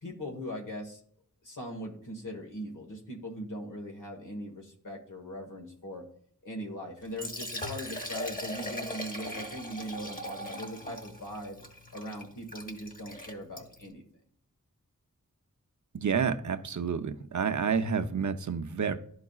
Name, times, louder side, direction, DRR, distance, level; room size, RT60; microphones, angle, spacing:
voice 1, 0.0-1.0 1.4-6.0 6.4-11.6 11.9-14.0, equal, 70° left, -1 dB, 1.3 m, -40 dB
Liquid, 7.0-13.9, left 1 dB, 25° left, 1.4 m, -40 dB
voice 2, 15.9-19.0, right 6 dB, 60° right, 9 dB, 0.6 m, -29 dB
12.0 x 4.7 x 2.3 m, 0.64 s
wide cardioid pair, 65°, 32 cm